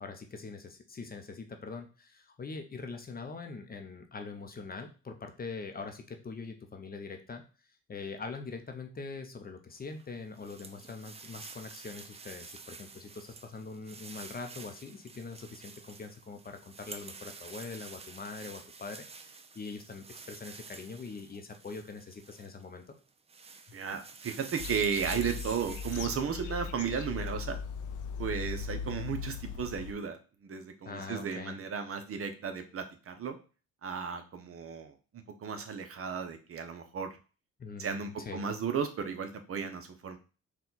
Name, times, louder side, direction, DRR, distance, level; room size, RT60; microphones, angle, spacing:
voice 1, 0.0-7.4 7.9-22.8 30.8-31.6 37.6-38.5, left 4 dB, 30° left, 5 dB, 0.7 m, -43 dB
sound 1, 9.8-22.6 23.1-26.1, right 4 dB, 20° right, 0.4 m, -49 dB
voice 2, 23.7-27.6 28.2-33.4 33.8-37.2 37.8-40.2, right 6 dB, 50° right, 7 dB, 0.7 m, -35 dB
sound 2, 24.6-29.9, left 6 dB, 85° left, 0.5 m, -39 dB
4.4 x 2.3 x 3.9 m, 0.35 s
cardioid pair, 90°, 30 cm